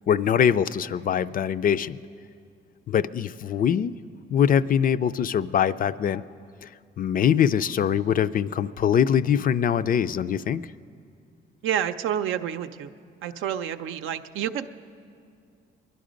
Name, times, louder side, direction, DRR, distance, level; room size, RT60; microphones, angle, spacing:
voice 1, 0.1-2.0 2.9-3.9 4.3-6.2 7.0-10.6, left 8 dB, 45° left, 14 dB, 0.4 m, -23 dB
voice 2, 11.6-12.9 13.2-14.7, right 9 dB, 85° right, 9 dB, 0.6 m, -29 dB
20.5 x 11.5 x 5.1 m, 2.4 s
cardioid pair, 90°, 20 cm